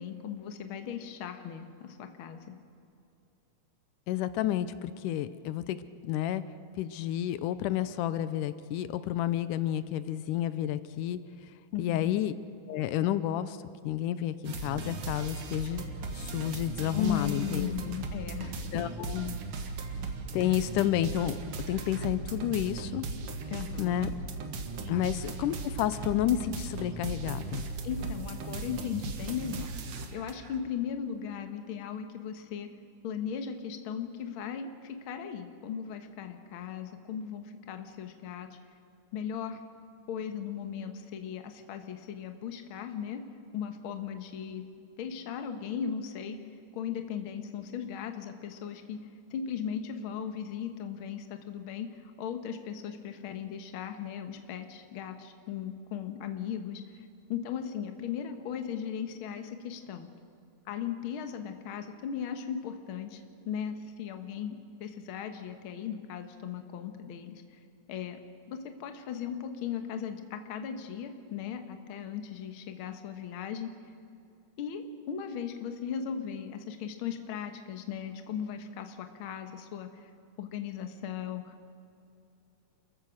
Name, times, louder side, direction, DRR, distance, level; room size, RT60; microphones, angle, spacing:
voice 1, 0.0-2.5 11.7-12.2 16.9-18.8 23.5-24.1 24.9-25.1 27.8-29.8 30.1-32.7 33.0-38.5 39.1-39.6 40.1-43.2 43.5-44.6 45.0-46.4 46.7-49.0 49.3-60.1 60.7-67.4 67.9-68.2 68.5-73.7 74.6-79.9 80.4-81.7, left 8 dB, 55° left, 7 dB, 1.7 m, -37 dB
voice 2, 4.1-5.8 6.0-6.4 6.8-11.2 11.8-12.3 12.7-13.6 13.8-17.7 18.7-19.4 20.3-21.4 21.7-23.1 23.8-24.1 24.9-27.7, left 12 dB, 90° left, 14 dB, 2.2 m, -30 dB
sound 1, 14.4-30.6, right 4 dB, 55° right, 1.9 m, -38 dB
28.5 x 15.0 x 6.4 m, 2.7 s
omnidirectional pair, 3.6 m